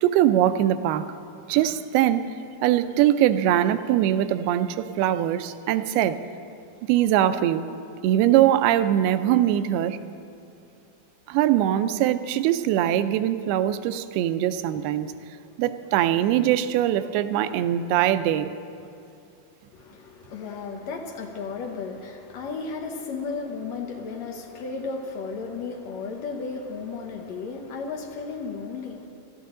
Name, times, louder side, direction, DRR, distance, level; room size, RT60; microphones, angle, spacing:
voice 1, 0.0-1.1 1.5-2.2 2.6-6.2 6.9-7.8 8.0-10.0 11.3-15.1 15.6-18.5, right 12 dB, 80° right, 11 dB, 2.5 m, -22 dB
voice 2, 19.7-29.1, left 4 dB, 85° left, 1 dB, 1.5 m, -34 dB
25.0 x 13.5 x 3.8 m, 2.5 s
omnidirectional pair, 4.6 m